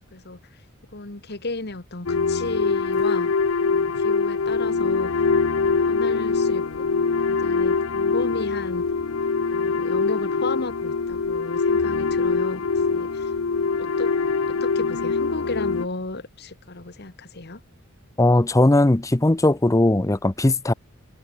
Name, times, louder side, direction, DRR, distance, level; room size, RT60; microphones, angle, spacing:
voice 1, 0.9-3.3 3.7-5.1 5.6-6.9 7.3-8.8 9.5-13.3 13.8-14.2 14.5-17.6, left 2 dB, 50° left, 2.0 m, -34 dB
sound 1, 2.1-15.9, left 4 dB, 70° left, 0.7 m, -23 dB
voice 2, 18.2-20.7, left 1 dB, 15° left, 0.6 m, -18 dB
head